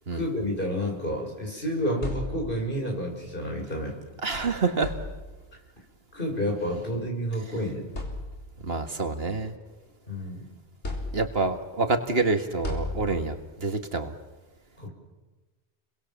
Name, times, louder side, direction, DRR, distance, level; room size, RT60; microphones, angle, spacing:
voice 1, 0.1-4.0 6.1-7.9 10.1-10.4 14.8-14.9, equal, 50° left, 1 dB, 6.7 m, -30 dB
sound 1, 1.7-2.8 4.1-4.2 4.7-5.6 6.7-6.8 7.4-7.5 7.9-8.7 9.2-10.3 10.8-11.6 12.6-13.5, left 2 dB, 85° left, 4.1 m, -36 dB
voice 2, 4.2-4.9 8.6-9.5 11.1-14.1, right 3 dB, 60° right, 7 dB, 2.0 m, -27 dB
30.0 x 23.0 x 7.3 m, 1.2 s
omnidirectional pair, 1.1 m